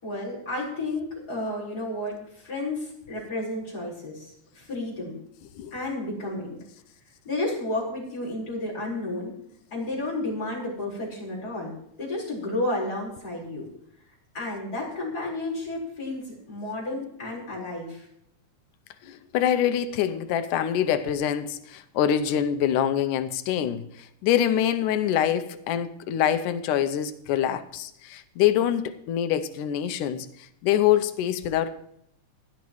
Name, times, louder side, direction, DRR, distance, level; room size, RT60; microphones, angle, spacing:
voice 1, 0.0-5.2 5.7-6.6 7.2-9.3 9.7-11.7 12.0-13.7 14.3-18.1, left 2 dB, 30° left, 5.1 m, -32 dB
voice 2, 19.0-23.8 24.2-30.3 30.6-31.7, left 10 dB, 90° left, 2.3 m, -25 dB
15.5 x 11.5 x 3.1 m
omnidirectional pair, 3.6 m